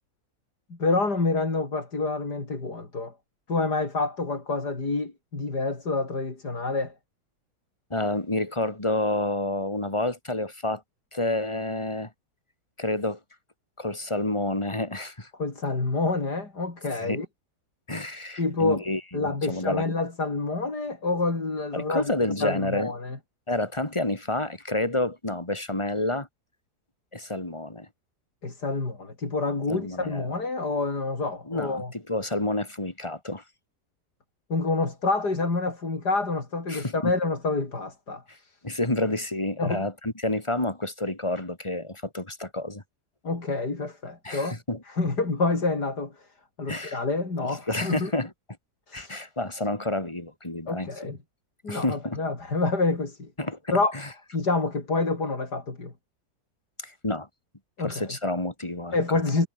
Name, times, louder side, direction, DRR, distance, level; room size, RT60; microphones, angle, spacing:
voice 1, 0.7-3.1 3.5-6.9 15.4-17.3 18.4-18.8 19.1-23.2 28.4-31.9 34.5-38.6 39.6-39.8 43.2-44.6 45.0-46.3 46.6-48.1 48.9-49.2 50.7-51.2 51.6-53.3 53.7-54.0 54.3-55.9 57.8-58.2 58.9-59.5, left 3 dB, 90° left, 5.1 m, -27 dB
voice 2, 7.9-10.8 11.1-12.1 12.8-13.2 13.8-15.3 16.9-17.2 17.9-19.9 21.7-22.9 23.5-26.3 27.1-27.9 29.7-30.3 31.5-33.4 36.7-37.1 38.3-38.4 38.6-42.8 44.2-44.8 46.7-47.0 47.4-48.3 48.9-51.1 51.7-52.2 53.4-54.1 56.8-57.3 57.8-59.0, left 2 dB, 15° left, 3.7 m, -29 dB
omnidirectional pair, 1.7 m